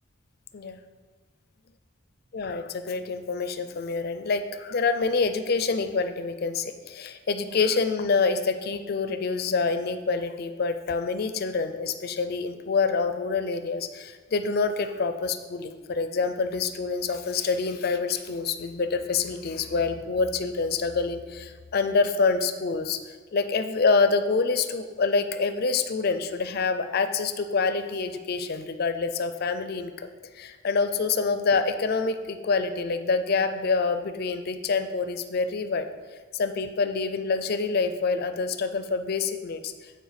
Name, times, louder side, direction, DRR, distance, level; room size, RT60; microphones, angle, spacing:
voice 1, 2.3-23.0 23.3-30.1 30.4-35.9 36.3-39.7, left 4 dB, 50° left, 9 dB, 0.5 m, -26 dB
8.0 x 4.3 x 5.0 m, 1.4 s
head